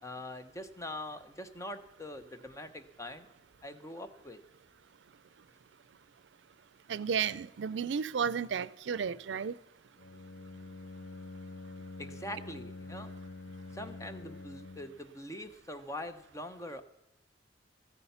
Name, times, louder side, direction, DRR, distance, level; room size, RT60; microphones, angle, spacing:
voice 1, 0.0-3.3 3.6-4.4 12.0-13.1 13.7-16.8, left 1 dB, 15° left, 0.9 m, -43 dB
voice 2, 6.9-9.6, right 7 dB, 75° right, 0.4 m, -33 dB
Bowed string instrument, 10.0-15.1, left 3 dB, 70° left, 0.8 m, -46 dB
13.5 x 9.9 x 5.7 m
head